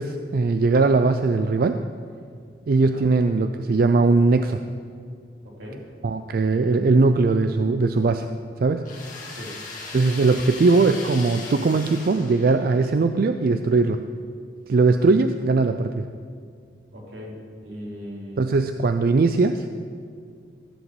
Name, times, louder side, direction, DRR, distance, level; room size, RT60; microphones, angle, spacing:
voice 1, 0.0-1.8 2.7-4.6 6.0-8.3 8.6-8.9 9.9-14.0 14.7-16.1 18.4-19.8, right 3 dB, 55° right, 8 dB, 0.4 m, -20 dB
sound 1, 8.8-12.9, left 3 dB, 50° left, 2.1 m, -38 dB
voice 2, 16.9-18.5, equal, 85° right, -4 dB, 3.3 m, -38 dB
14.5 x 5.1 x 7.8 m, 2.2 s
head